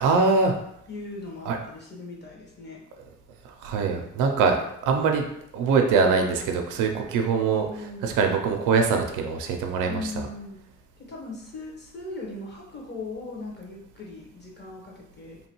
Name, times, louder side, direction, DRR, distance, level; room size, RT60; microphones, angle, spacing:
voice 1, 0.0-0.5 1.5-1.6 3.4-5.3 5.5-7.7 8.0-10.3, right 5 dB, 85° right, 4 dB, 0.5 m, -23 dB
voice 2, 0.9-2.8 7.5-8.1 9.8-10.6 11.0-15.4, left 2 dB, 35° left, -3 dB, 1.1 m, -38 dB
2.9 x 2.2 x 2.9 m, 0.74 s
cardioid pair, 90°, 30 cm